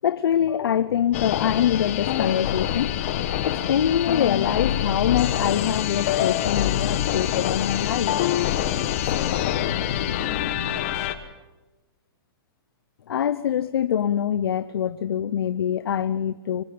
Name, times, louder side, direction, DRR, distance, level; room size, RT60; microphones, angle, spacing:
voice 1, 0.0-3.0 3.4-8.1 13.1-16.6, left 9 dB, 90° left, 14 dB, 0.8 m, -24 dB
sound 1, 1.1-11.1, left 11 dB, 35° left, 1.3 m, -25 dB
voice 2, 9.0-11.1, left 7 dB, 55° left, 5 dB, 3.6 m, -39 dB
24.0 x 17.0 x 8.6 m, 1.1 s
hypercardioid pair, 175°, 12 cm